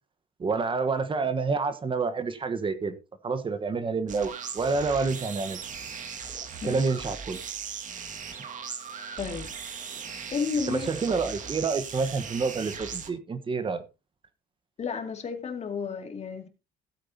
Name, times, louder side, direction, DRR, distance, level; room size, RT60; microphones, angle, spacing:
voice 1, 0.4-3.0 3.2-5.6 6.6-7.4 10.7-13.8, right 4 dB, 30° right, 1.2 m, -28 dB
sound 1, 4.1-13.1, right 6 dB, 50° right, 2.0 m, -38 dB
voice 2, 9.2-9.5 10.3-10.9 14.8-16.5, left 5 dB, 40° left, 2.3 m, -32 dB
16.0 x 8.5 x 2.8 m
cardioid pair, 110°, 17 cm